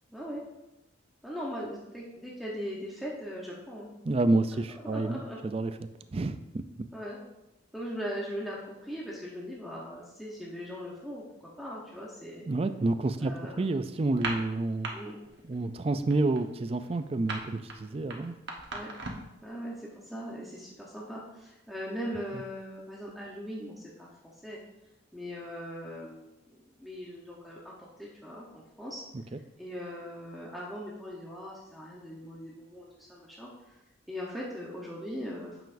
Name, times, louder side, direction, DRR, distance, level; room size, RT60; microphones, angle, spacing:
voice 1, 0.1-0.4 1.2-3.9 4.8-5.4 6.9-7.2 7.7-12.5 13.2-13.6 14.9-15.2 18.7-18.9 19.4-24.1 24.4-24.6 25.1-26.3 26.8-29.0 29.6-33.8 34.1-35.6, equal, ahead, -5 dB, 1.0 m, -40 dB
voice 2, 4.0-5.8 6.1-6.9 12.5-14.9 15.4-18.4 22.3-22.4 29.3-29.4, right 2 dB, 30° right, 11 dB, 0.4 m, -29 dB
sound 1, 14.1-14.9 15.2-15.5 15.8-19.4, right 3 dB, 60° right, 1.2 m, -37 dB
9.2 x 7.0 x 2.6 m, 0.93 s
head